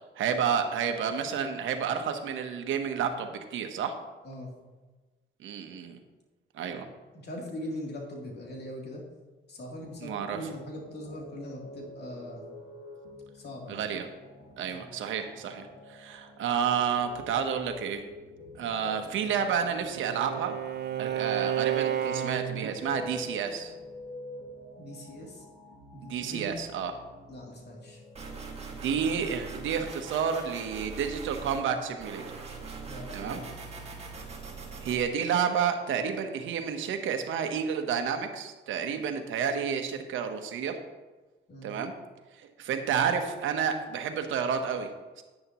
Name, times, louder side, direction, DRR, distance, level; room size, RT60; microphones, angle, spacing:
voice 1, 0.2-4.0 5.4-6.0 6.5-6.9 10.0-10.4 13.7-14.0 14.6-18.0 18.6-20.6 21.0-23.7 26.0-26.9 28.8-32.4 33.1-33.4 34.8-40.8 41.6-41.9 42.4-45.2, right 7 dB, 80° right, 6 dB, 1.2 m, -30 dB
voice 2, 7.1-9.0 9.5-12.4 13.3-13.9 14.7-14.9 24.8-25.4 25.9-26.5 27.3-28.0 32.8-33.9 41.5-41.7, equal, 55° left, -2 dB, 3.2 m, -41 dB
sound 1, 9.8-28.3, left 1 dB, 80° left, 3.3 m, -48 dB
Bowed string instrument, 19.2-22.8, right 11 dB, 60° right, 0.7 m, -32 dB
sound 2, 28.1-31.6 32.0-35.0, right 4 dB, 30° right, 2.1 m, -41 dB
10.5 x 10.0 x 3.1 m, 1.2 s
cardioid pair, 90°, 20 cm